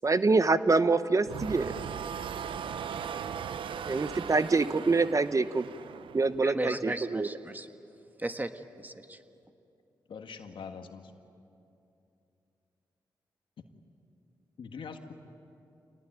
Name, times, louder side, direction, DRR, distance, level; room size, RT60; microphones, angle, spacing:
voice 1, 0.0-1.7 3.9-5.7 6.1-7.3, right 3 dB, 40° right, 13 dB, 0.9 m, -25 dB
sound 1, 1.2-6.4, right 7 dB, 80° right, 0.7 m, -38 dB
voice 2, 6.4-7.7 8.2-9.2, right 1 dB, 20° right, 8 dB, 1.5 m, -36 dB
voice 3, 10.1-11.1 14.6-15.1, left 5 dB, 75° left, 6 dB, 1.7 m, -43 dB
26.0 x 19.0 x 9.3 m, 2.7 s
cardioid pair, 50°, 9 cm